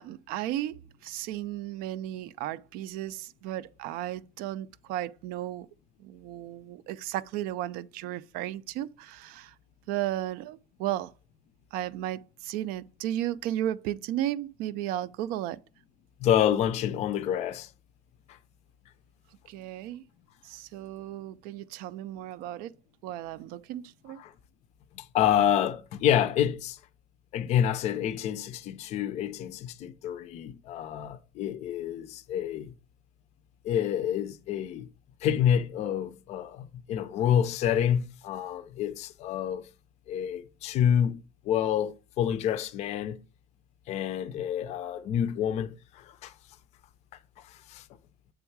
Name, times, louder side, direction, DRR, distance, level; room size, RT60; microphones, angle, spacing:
voice 1, 0.0-5.7 6.0-9.5 9.9-11.1 11.7-15.6 19.5-20.0 20.4-22.8 23.0-24.2, right 13 dB, 55° right, 0.4 m, -34 dB
voice 2, 16.2-17.7 18.3-18.4 24.2-24.3 24.9-26.8 27.3-32.7 33.6-34.9 35.2-39.7 40.1-41.2 41.4-43.2 43.9-46.3 47.4-47.9, left 9 dB, 40° left, 0.5 m, -28 dB
7.9 x 3.6 x 4.6 m
cardioid pair, 175°, 18 cm